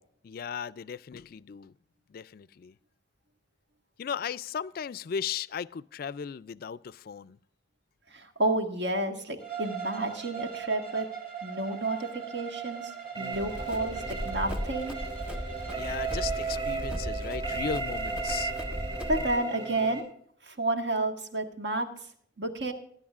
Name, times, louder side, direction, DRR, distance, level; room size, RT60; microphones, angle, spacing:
voice 1, 0.2-1.7 2.1-2.7 4.0-7.4 15.8-18.5, left 7 dB, 50° left, 0.3 m, -36 dB
voice 2, 8.1-11.1 11.4-12.9 13.2-15.0 19.1-20.0 20.4-21.9 22.4-22.7, right 2 dB, 65° right, 1.6 m, -30 dB
Bowed string instrument, 9.4-16.6, right 8 dB, 50° right, 2.3 m, -40 dB
sound 1, 13.1-20.0, right 4 dB, 25° right, 3.6 m, -35 dB
Run, 13.3-19.4, equal, 5° right, 1.2 m, -37 dB
20.5 x 11.0 x 2.4 m
head